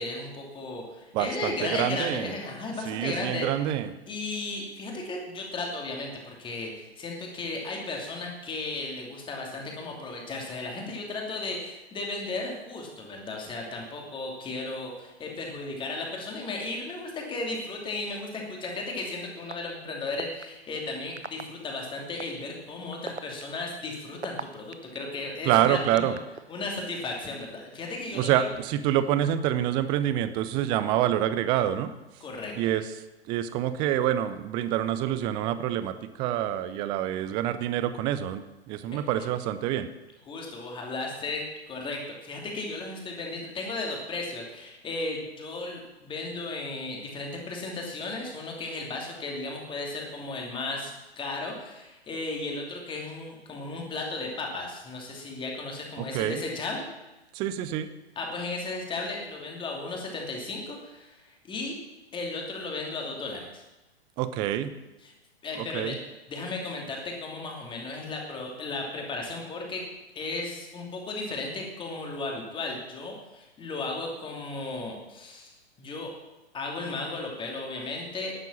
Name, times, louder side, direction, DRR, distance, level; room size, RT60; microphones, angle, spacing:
voice 1, 0.0-3.5 4.1-26.2 26.5-28.5 32.2-32.5 40.3-56.8 58.2-61.7 62.1-63.6 65.0-65.1 65.4-66.0 66.3-69.9 70.1-76.1 76.5-78.4, left 3 dB, 15° left, 0 dB, 2.8 m, -35 dB
voice 2, 1.1-2.3 2.8-3.9 25.5-26.2 28.1-31.9 32.6-32.9 33.3-39.9 56.0-56.4 57.3-57.9 64.2-64.7 65.6-66.0, right 11 dB, 15° right, 13 dB, 0.4 m, -27 dB
sound 1, 18.6-18.7 19.5-19.6 20.2-20.4 21.2-21.4 22.2-22.3 22.9-25.0 25.6-26.4, right 4 dB, 85° right, 0.8 m, -37 dB
12.0 x 9.2 x 7.2 m, 1.1 s
figure-of-eight pair, 110°, 33 cm